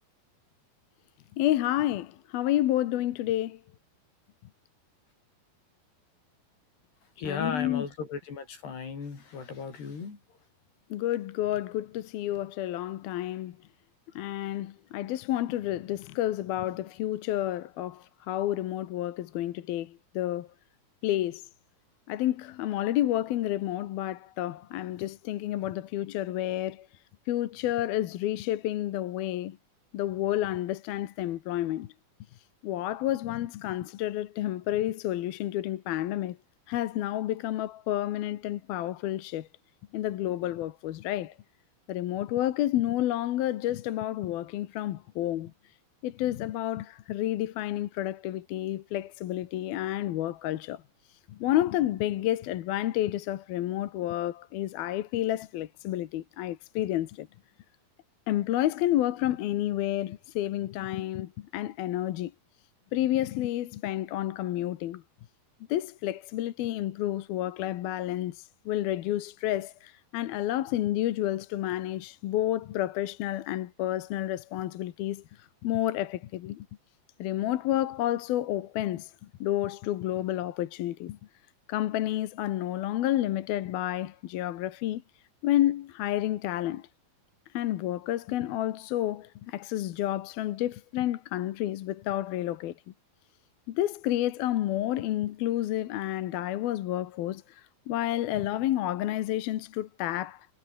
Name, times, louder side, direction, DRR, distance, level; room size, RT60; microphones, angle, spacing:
voice 1, 1.4-3.6 7.2-7.8 10.9-13.6 14.2-20.5 21.0-21.5 22.1-26.9 27.3-29.6 29.9-31.9 32.6-36.4 36.7-39.5 39.9-41.4 41.9-45.5 46.0-50.8 51.3-57.3 58.3-62.3 62.9-65.0 65.7-76.7 77.2-79.1 79.4-81.2 81.7-85.0 85.4-86.9 87.5-92.7 93.7-100.5, left 13 dB, 70° left, 3.0 m, -30 dB
voice 2, 7.2-10.2, left 5 dB, 90° left, 7.8 m, -36 dB
omnidirectional pair, 4.6 m